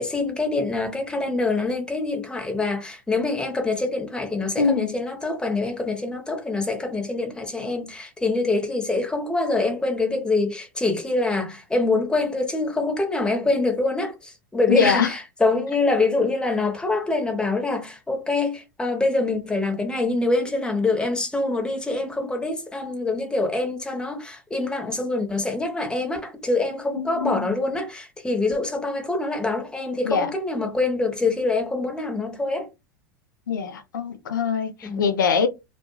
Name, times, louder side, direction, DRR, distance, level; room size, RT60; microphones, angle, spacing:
voice 1, 0.0-32.7 34.8-35.1, left 3 dB, 10° left, 0.9 m, -25 dB
voice 2, 4.6-5.0 14.7-15.1 27.0-27.5 30.0-30.3 33.5-35.5, left 6 dB, 80° left, 0.4 m, -23 dB
2.4 x 2.1 x 3.0 m
hypercardioid pair, 90°, 10 cm